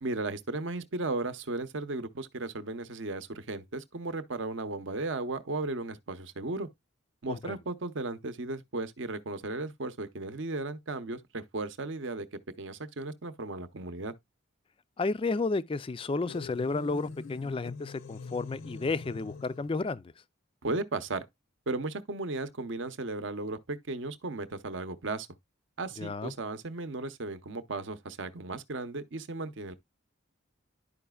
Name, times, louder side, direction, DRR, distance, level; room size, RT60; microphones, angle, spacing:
voice 1, 0.0-6.7 7.2-14.1 20.6-21.2 21.7-25.3 25.8-29.7, right 2 dB, 60° right, 0.7 m, -35 dB
voice 2, 15.0-20.0 26.0-26.3, left 3 dB, 25° left, 0.3 m, -32 dB
sound 1, 16.3-19.8, left 4 dB, 70° left, 0.6 m, -44 dB
11.0 x 4.9 x 2.3 m
head